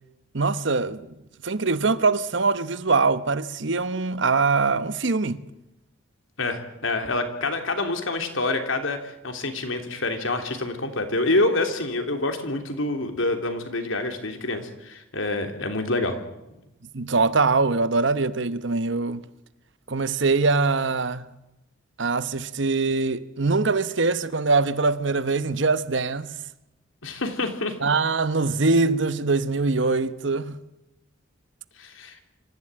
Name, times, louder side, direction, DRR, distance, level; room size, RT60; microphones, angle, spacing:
voice 1, 0.3-1.1 1.4-5.4 16.9-19.2 19.9-21.3 22.0-26.3 27.8-30.6, right 3 dB, 70° right, 1.0 m, -23 dB
voice 2, 6.4-16.2 27.0-27.7 31.8-32.2, left 2 dB, 80° left, 3.2 m, -27 dB
26.0 x 14.5 x 9.0 m
head